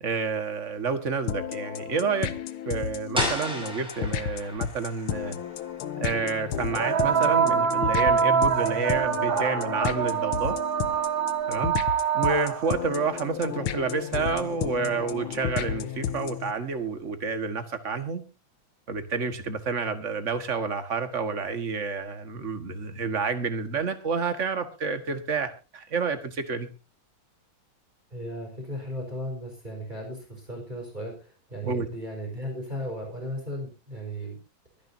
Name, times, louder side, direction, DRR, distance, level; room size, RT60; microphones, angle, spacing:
voice 1, 0.0-2.3 2.7-5.4 6.0-10.6 11.5-11.7 12.1-18.2 18.9-26.7 31.6-31.9, right 5 dB, 35° right, 9 dB, 1.8 m, -29 dB
sound 1, 1.3-16.5, left 9 dB, 80° left, 1.8 m, -33 dB
sound 2, 3.1-8.8, left 1 dB, ahead, 5.4 m, -36 dB
sound 3, 4.6-4.7 6.7-12.9 14.3-14.4 15.3-15.4, right 7 dB, 65° right, 2.5 m, -25 dB
voice 2, 28.1-34.4, equal, 20° right, 1 dB, 4.9 m, -36 dB
24.0 x 10.5 x 2.7 m, 0.30 s
omnidirectional pair, 2.3 m